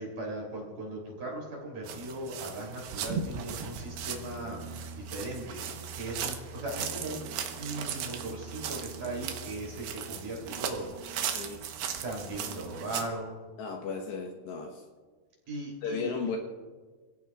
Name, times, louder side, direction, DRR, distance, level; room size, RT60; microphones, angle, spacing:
voice 1, 0.0-7.2 7.6-11.4 12.0-13.4 15.5-16.1, right 1 dB, 45° right, -1 dB, 4.3 m, -38 dB
sound 1, 1.8-13.1, right 7 dB, 70° right, 2.7 m, -37 dB
voice 2, 13.6-14.8 15.8-16.4, left 5 dB, 70° left, 1 dB, 3.0 m, -35 dB
29.0 x 17.0 x 2.4 m, 1.4 s
omnidirectional pair, 5.7 m